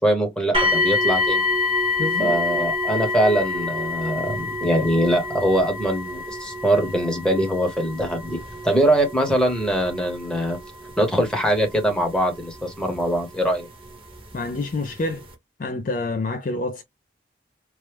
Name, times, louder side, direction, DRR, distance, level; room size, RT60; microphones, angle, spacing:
voice 1, 0.0-1.5 2.2-10.6 11.0-13.7, right 1 dB, 5° left, 0.9 m, -22 dB
sound 1, 0.5-13.4 14.3-14.4 14.9-15.0, left 3 dB, 30° right, 0.8 m, -27 dB
voice 2, 2.0-2.3 14.3-15.3 15.6-16.8, left 2 dB, 45° left, 0.4 m, -27 dB
3.1 x 2.0 x 3.3 m
head